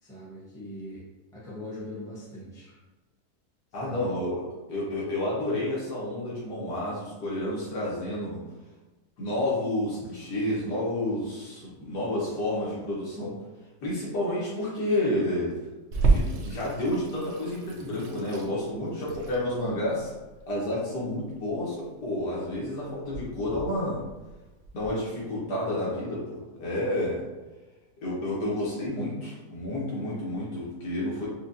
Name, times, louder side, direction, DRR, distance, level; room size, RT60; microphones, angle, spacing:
voice 1, 0.0-1.0 1.3-2.8 3.8-4.1, left 1 dB, 5° left, -7 dB, 0.8 m, -41 dB
voice 2, 3.7-8.4 9.2-13.3 13.8-15.5 16.1-20.1 20.5-24.0 24.7-27.2 28.0-31.3, left 1 dB, 90° left, -6 dB, 1.8 m, -30 dB
Water tap faucet / Sink (filling or washing), 15.9-24.9, right 3 dB, 70° right, 1.0 m, -31 dB
4.9 x 2.4 x 2.7 m, 1.1 s
omnidirectional pair, 1.7 m